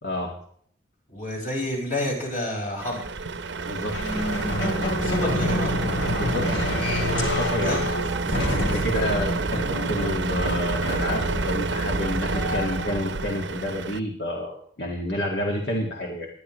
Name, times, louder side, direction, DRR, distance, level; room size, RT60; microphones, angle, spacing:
voice 1, 1.1-3.1 5.0-5.8 7.6-7.9 8.3-8.8 10.9-11.1, left 1 dB, 45° left, -1 dB, 5.1 m, -30 dB
Truck, 2.8-14.0, right 3 dB, 70° right, 0.7 m, -28 dB
sound 1, 3.9-13.0, left 1 dB, 80° left, 2.8 m, -28 dB
voice 2, 6.2-6.8 7.4-7.8 8.5-9.6 9.9-16.3, left 1 dB, 65° left, 0 dB, 1.8 m, -29 dB
20.0 x 11.0 x 3.1 m, 0.62 s
head